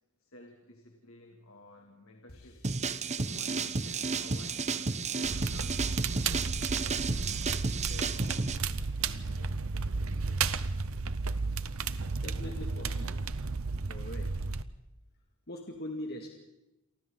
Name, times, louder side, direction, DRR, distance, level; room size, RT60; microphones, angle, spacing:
voice 1, 0.2-2.6 3.2-7.1 7.6-10.7, left 2 dB, 70° left, 2 dB, 2.6 m, -54 dB
sound 1, 2.3-5.5 5.8-5.9 6.3-6.8 7.3-7.8 8.3-10.1, left 1 dB, 90° left, 4.7 m, -55 dB
sound 2, 2.6-8.6, right 4 dB, 30° right, 0.9 m, -32 dB
Crackle, 5.2-14.6, right 4 dB, 70° right, 0.8 m, -33 dB
voice 2, 12.2-13.3 13.9-14.3 15.5-16.3, left 1 dB, 50° left, 1 dB, 2.3 m, -41 dB
29.0 x 24.0 x 4.0 m, 0.91 s
head